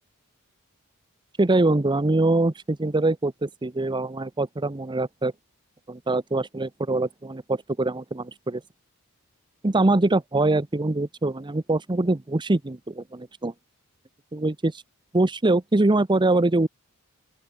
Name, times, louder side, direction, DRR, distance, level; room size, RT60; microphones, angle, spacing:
voice 1, 1.4-5.3 5.9-8.6 9.6-13.5 14.3-14.7 15.1-16.7, right 2 dB, 20° right, 0.7 m, -23 dB
open air
head